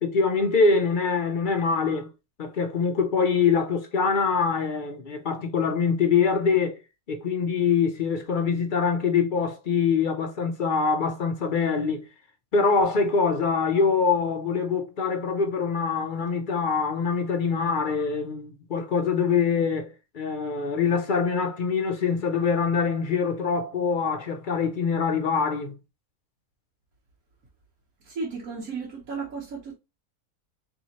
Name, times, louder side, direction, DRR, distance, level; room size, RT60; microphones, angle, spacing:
voice 1, 0.0-2.1 2.4-6.8 7.1-12.1 12.5-19.9 20.1-25.7, left 5 dB, 55° left, 0.6 m, -24 dB
voice 2, 28.0-29.7, right 4 dB, 80° right, 1.6 m, -34 dB
4.2 x 3.4 x 2.8 m
omnidirectional pair, 1.5 m